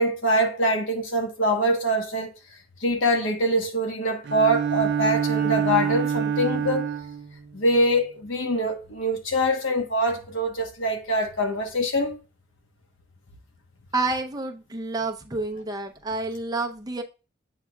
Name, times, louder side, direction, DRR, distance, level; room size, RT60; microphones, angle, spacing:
voice 1, 0.0-2.3 2.8-6.9 7.5-12.2, equal, 85° left, 1.2 m, -24 dB
Bowed string instrument, 4.2-7.3, right 7 dB, 60° right, 0.3 m, -26 dB
voice 2, 13.9-17.0, right 3 dB, 20° right, 0.7 m, -29 dB
8.2 x 5.5 x 2.3 m
head